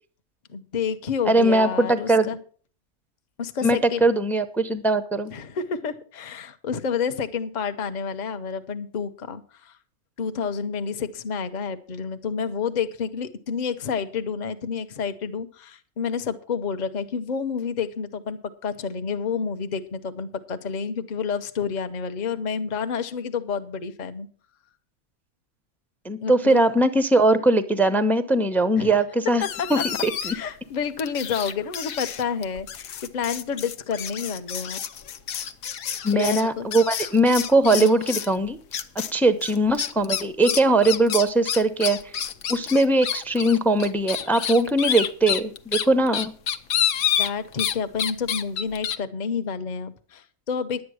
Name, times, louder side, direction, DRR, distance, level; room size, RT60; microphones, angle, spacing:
voice 1, 0.5-2.4 3.4-4.1 5.3-9.7 10.2-24.3 26.2-26.6 28.8-28.9 29.6-29.8 30.2-34.8 36.1-36.7 37.7-37.9 47.2-50.8, left 6 dB, 35° left, 9 dB, 0.8 m, -29 dB
voice 2, 1.2-2.3 3.6-5.3 26.0-29.4 29.7-30.3 36.0-38.6 39.1-42.0 42.5-46.3, right 2 dB, ahead, 11 dB, 0.4 m, -20 dB
sound 1, 29.4-30.5 31.0-38.3 38.7-39.1 39.4-47.7 48.0-49.0, left 9 dB, 70° left, 1.2 m, -29 dB
11.0 x 8.6 x 6.3 m, 0.43 s
omnidirectional pair, 1.5 m